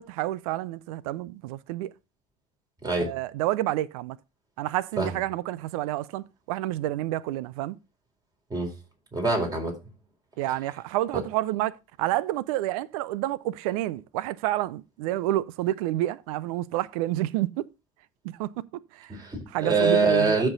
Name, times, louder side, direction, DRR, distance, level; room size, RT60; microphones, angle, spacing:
voice 1, 0.0-1.9 3.0-4.2 4.6-7.8 10.4-11.7 12.0-17.6 18.2-18.5 18.9-19.1 19.5-20.5, right 15 dB, 70° right, 0.5 m, -29 dB
voice 2, 2.8-3.1 5.0-5.2 8.5-8.7 9.1-9.7 11.1-11.2 19.1-20.5, right 3 dB, 20° right, 4.1 m, -24 dB
13.0 x 4.4 x 3.9 m
hypercardioid pair, 75°, 19 cm